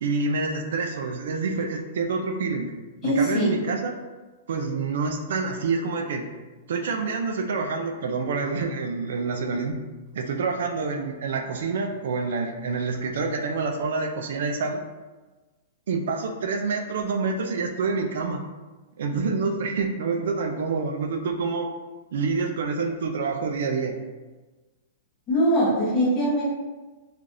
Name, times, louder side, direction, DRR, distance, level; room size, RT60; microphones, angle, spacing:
voice 1, 0.0-2.7 3.0-3.9 4.5-6.3 6.7-9.8 10.1-14.8 15.9-18.4 19.0-21.7 22.1-24.0, right 4 dB, 65° right, 4 dB, 0.3 m, -27 dB
voice 2, 3.0-3.6 25.3-26.4, equal, 15° left, -6 dB, 0.8 m, -22 dB
3.2 x 2.4 x 2.5 m, 1.2 s
supercardioid pair, 175°, 0 cm